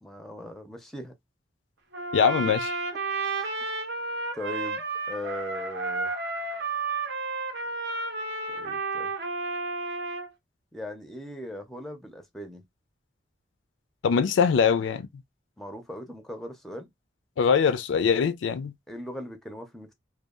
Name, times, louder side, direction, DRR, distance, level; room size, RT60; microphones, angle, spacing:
voice 1, 0.0-1.1 2.4-2.5 3.3-3.6 4.3-6.1 8.5-9.1 10.7-12.6 15.6-16.9 18.9-19.9, left 1 dB, ahead, 0.5 m, -39 dB
Trumpet, 1.9-10.3, right 3 dB, 65° right, 0.6 m, -32 dB
voice 2, 2.1-2.7 14.0-15.1 17.4-18.7, left 6 dB, 80° left, 0.4 m, -22 dB
2.7 x 2.2 x 2.3 m
head